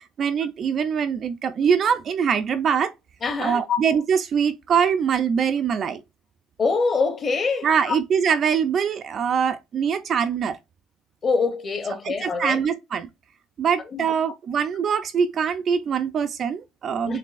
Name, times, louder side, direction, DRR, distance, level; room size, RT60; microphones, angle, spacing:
voice 1, 0.0-2.9 3.4-6.0 7.6-10.6 11.9-13.1 13.6-17.2, right 7 dB, 35° right, 0.4 m, -23 dB
voice 2, 3.2-3.8 6.6-8.0 11.2-12.6 13.9-14.1 17.1-17.2, left 4 dB, 25° left, 1.0 m, -24 dB
6.6 x 2.7 x 2.5 m
cardioid pair, 170°, 0 cm